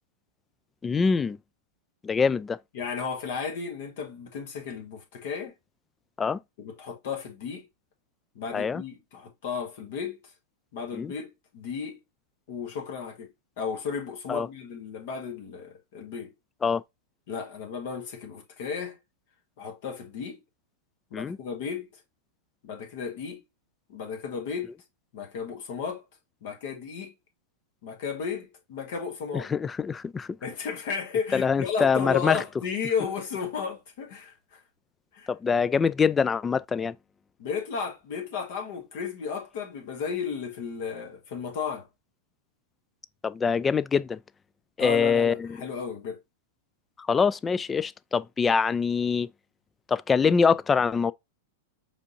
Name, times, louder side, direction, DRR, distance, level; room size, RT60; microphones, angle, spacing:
voice 1, 0.8-1.4 2.0-2.6 6.2-6.4 8.5-8.8 10.9-11.1 14.3-14.5 16.6-16.8 21.1-21.4 29.3-30.4 31.3-32.4 35.3-37.0 43.2-44.2 44.8-45.6 47.0-49.3 49.9-51.1, left 5 dB, 20° left, 0.3 m, -24 dB
voice 2, 2.7-5.5 6.6-7.6 8.4-10.2 10.7-12.0 12.5-13.3 13.6-16.3 17.3-19.0 19.6-20.4 21.1-22.0 22.6-23.4 23.9-24.8 25.1-26.0 26.4-27.1 27.8-29.5 30.4-34.6 35.1-35.3 37.4-41.9 44.8-46.2, left 6 dB, 60° left, 1.6 m, -34 dB
5.1 x 3.5 x 2.6 m
hypercardioid pair, 105°, 0 cm